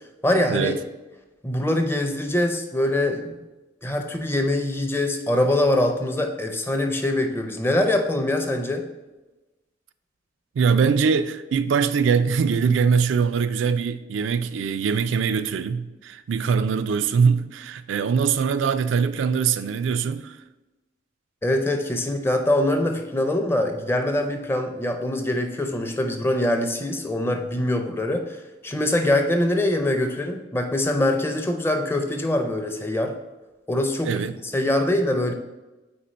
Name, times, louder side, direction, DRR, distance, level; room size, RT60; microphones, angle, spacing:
voice 1, 0.2-0.7 1.4-3.4 3.8-8.8 21.4-28.4 28.6-33.1 33.7-35.3, left 1 dB, 15° left, 0.5 m, -23 dB
voice 2, 10.6-20.4 34.0-34.3, right 6 dB, 85° right, 0.3 m, -22 dB
4.3 x 4.3 x 5.1 m
head